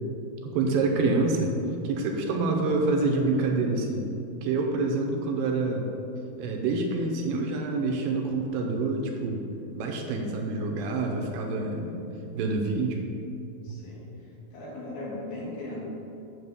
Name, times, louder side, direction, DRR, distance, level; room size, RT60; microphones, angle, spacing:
voice 1, 0.4-1.5 1.8-4.1 4.4-5.9 6.4-9.4 9.7-11.9 12.3-13.0 13.7-13.8, right 3 dB, 80° right, 2 dB, 2.4 m, -27 dB
voice 2, 13.6-15.8, left 2 dB, 85° left, -5 dB, 3.6 m, -39 dB
8.7 x 3.8 x 6.9 m, 2.7 s
omnidirectional pair, 4.2 m